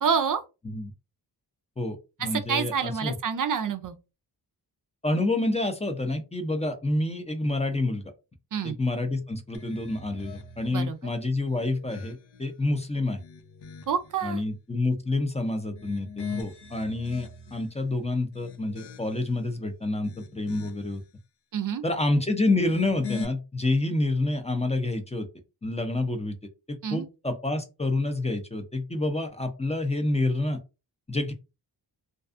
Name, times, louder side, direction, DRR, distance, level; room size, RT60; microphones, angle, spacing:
voice 1, 0.0-0.4 2.3-4.0 8.5-8.8 10.7-11.0 13.9-14.4 21.5-21.8 26.8-27.1, right 7 dB, 50° right, 0.4 m, -27 dB
voice 2, 1.8-3.1 5.0-8.0 8.6-13.2 14.2-21.0 21.8-25.3 25.6-26.4 26.7-30.6 31.1-31.3, left 2 dB, 15° left, 0.5 m, -28 dB
sound 1, 9.5-10.8 11.4-12.5 13.0-14.1 15.6-17.7 18.2-19.4 19.9-21.0 22.5-23.3, left 6 dB, 75° left, 0.6 m, -41 dB
2.5 x 2.3 x 2.4 m
cardioid pair, 60°, 42 cm